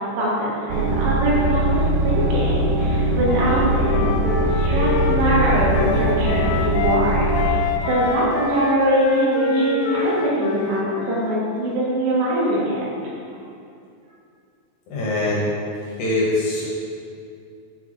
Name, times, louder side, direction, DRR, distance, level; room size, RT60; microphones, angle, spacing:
voice 1, 0.0-4.1 4.5-12.8, right 1 dB, 90° right, -7 dB, 3.8 m, -23 dB
sound 1, 0.7-7.5, right 1 dB, 70° right, 2.1 m, -21 dB
Wind instrument woodwind instrument, 3.2-7.1 7.3-11.4, left 5 dB, 90° left, 2.9 m, -26 dB
voice 2, 14.9-15.5 16.0-16.6, left 2 dB, 75° left, -5 dB, 2.1 m, -22 dB
9.5 x 4.0 x 3.7 m, 2.5 s
omnidirectional pair, 5.1 m